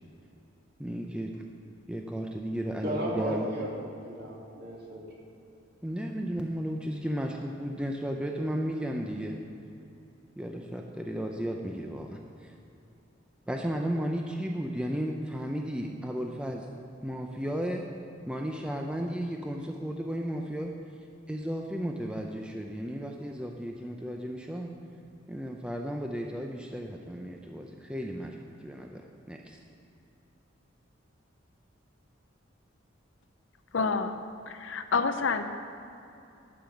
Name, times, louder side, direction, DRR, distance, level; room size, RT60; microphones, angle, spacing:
voice 1, 0.8-1.3 1.9-3.5 5.8-9.4 10.4-12.5 13.5-16.7 17.0-17.9 18.3-20.7 21.3-24.7 25.3-29.6, equal, 5° right, 1 dB, 0.5 m, -34 dB
voice 2, 2.8-5.0, equal, 55° right, -3 dB, 2.4 m, -35 dB
voice 3, 33.7-34.2 34.5-35.4, left 4 dB, 75° left, 9 dB, 0.7 m, -28 dB
12.0 x 5.4 x 7.7 m, 2.8 s
head